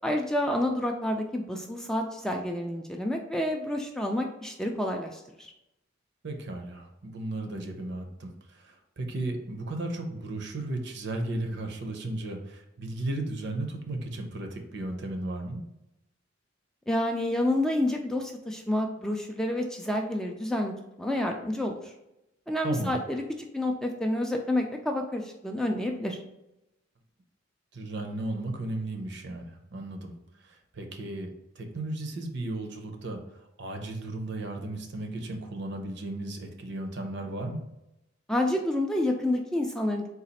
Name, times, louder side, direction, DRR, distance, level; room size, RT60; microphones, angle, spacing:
voice 1, 0.0-5.5 16.9-20.7 21.0-21.8 22.5-23.2 23.5-26.2 38.3-40.1, left 1 dB, 5° left, 2 dB, 0.3 m, -29 dB
voice 2, 6.2-15.6 22.6-23.0 27.7-30.1 30.4-37.6, right 2 dB, 60° right, 4 dB, 0.7 m, -35 dB
4.0 x 2.4 x 4.1 m, 0.89 s
head